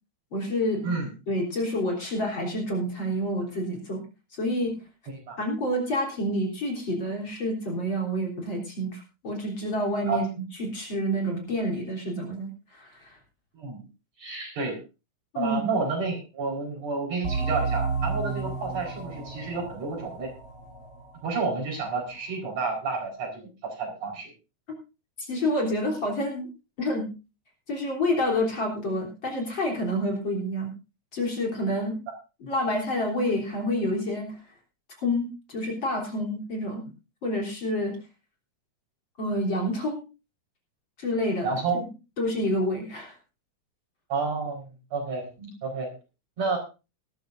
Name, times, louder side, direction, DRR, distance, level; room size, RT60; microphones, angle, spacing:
voice 1, 0.3-0.9 1.3-4.0 4.4-4.8 5.4-10.2 10.6-13.1 15.3-15.7 25.2-26.5 26.8-27.1 27.7-30.7 31.1-32.0 32.4-34.4 35.0-35.2 35.5-36.8 37.2-38.0 39.2-40.0 41.0-41.5 41.7-41.8 42.2-43.1 45.4-45.5, left 1 dB, 40° left, 0 dB, 4.1 m, -28 dB
voice 2, 14.2-14.8 15.4-20.3 21.2-24.3 41.4-41.8 44.1-44.6 44.9-45.3 45.6-45.9 46.4-46.6, right 4 dB, 60° right, 0 dB, 5.6 m, -30 dB
sound 1, 17.2-22.5, right 4 dB, 25° right, 3.3 m, -32 dB
18.5 x 13.5 x 2.6 m, 0.30 s
omnidirectional pair, 3.4 m